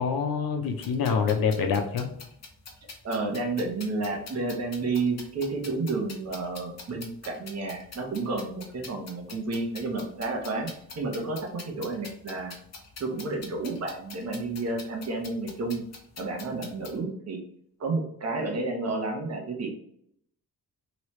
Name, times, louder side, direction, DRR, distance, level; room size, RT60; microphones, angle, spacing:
voice 1, 0.0-2.1, left 6 dB, 75° left, 5 dB, 0.7 m, -26 dB
sound 1, 0.7-17.0, left 4 dB, 45° left, 0.8 m, -46 dB
voice 2, 3.0-12.5 13.0-15.8 16.2-17.4 17.8-19.7, right 3 dB, 45° right, 1 dB, 0.9 m, -31 dB
3.1 x 3.0 x 3.1 m, 0.71 s
wide cardioid pair, 140°, 35 cm